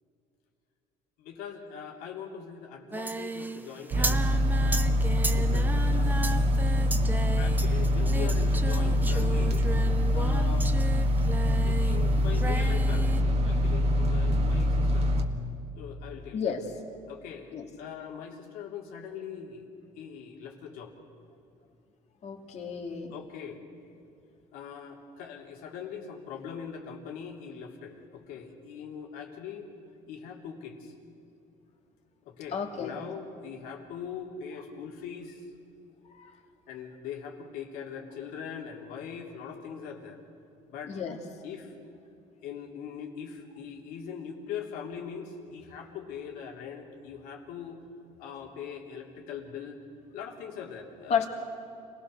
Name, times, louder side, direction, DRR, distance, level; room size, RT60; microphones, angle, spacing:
voice 1, 1.2-4.9 5.3-6.5 7.4-9.7 10.1-10.7 11.6-15.1 15.8-16.5 17.1-19.7 19.9-20.9 23.1-23.6 24.5-29.7 30.1-30.9 32.2-35.5 36.7-40.2 40.7-41.0 41.4-41.7 42.4-47.8 48.2-49.8 50.1-51.3, left 7 dB, 85° left, 1 dB, 3.2 m, -41 dB
Singing, 2.9-12.0 12.3-13.2, right 2 dB, 10° right, 1.0 m, -35 dB
sound 1, 3.9-15.2, equal, 45° right, 1.8 m, -24 dB
voice 2, 16.3-16.7 17.5-17.7 22.2-23.1 32.5-33.0 36.1-36.3 40.9-41.2 51.1-51.3, left 7 dB, 50° left, 3 dB, 2.7 m, -31 dB
27.0 x 18.5 x 6.8 m, 2.7 s
cardioid pair, 120°, 14 cm